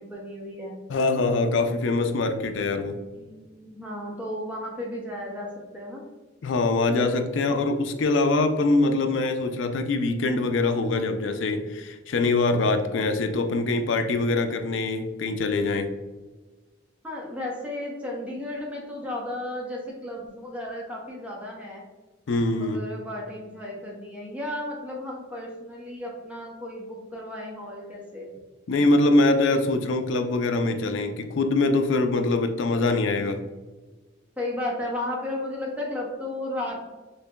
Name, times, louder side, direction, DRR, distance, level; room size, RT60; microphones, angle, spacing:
voice 1, 0.0-0.8 3.1-6.0 17.0-21.8 22.6-28.3 34.4-36.9, left 1 dB, 5° right, -3 dB, 0.7 m, -34 dB
voice 2, 0.9-3.0 6.4-15.9 22.3-22.8 28.7-33.4, left 2 dB, 75° left, 7 dB, 0.4 m, -23 dB
6.4 x 2.2 x 2.2 m, 1.2 s
head